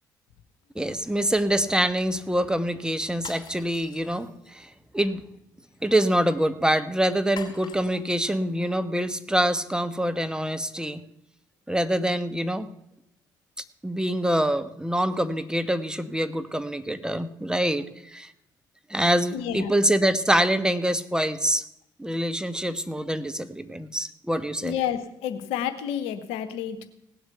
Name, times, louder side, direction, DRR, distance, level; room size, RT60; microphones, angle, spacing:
voice 1, 0.7-5.2 5.8-11.0 11.7-12.7 13.8-18.3 18.9-21.7 22.0-24.8, right 1 dB, 5° right, 11 dB, 1.1 m, -25 dB
sound 1, 3.1-4.6 7.4-8.3, left 6 dB, 45° left, 3.7 m, -44 dB
voice 2, 19.3-19.7 24.6-26.9, left 9 dB, 70° left, 11 dB, 1.0 m, -30 dB
17.5 x 7.9 x 6.8 m, 0.79 s
figure-of-eight pair, 45°, 10 cm